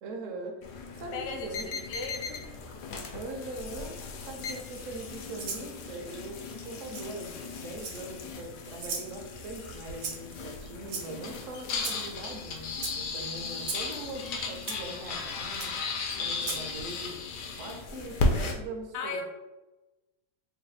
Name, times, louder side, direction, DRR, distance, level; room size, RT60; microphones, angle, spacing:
voice 1, 0.0-1.9 3.1-3.9 4.3-15.7 16.2-17.2 17.6-19.2, right 2 dB, 65° right, 2 dB, 0.8 m, -41 dB
sound 1, 0.6-18.5, left 3 dB, 90° left, 1.2 m, -36 dB
voice 2, 1.1-2.4 18.9-19.2, left 5 dB, 60° left, 2 dB, 0.7 m, -37 dB
Rattle (instrument), 5.4-5.7 6.9-7.0 7.8-8.2 8.8-9.1 10.0-10.3 10.9-11.3 11.8-12.0 12.8-12.9 13.6-13.8 14.7-14.8 15.6-15.7 16.4-16.6, right 5 dB, 80° right, 1.2 m, -36 dB
3.2 x 2.2 x 3.9 m, 1.1 s
omnidirectional pair, 1.7 m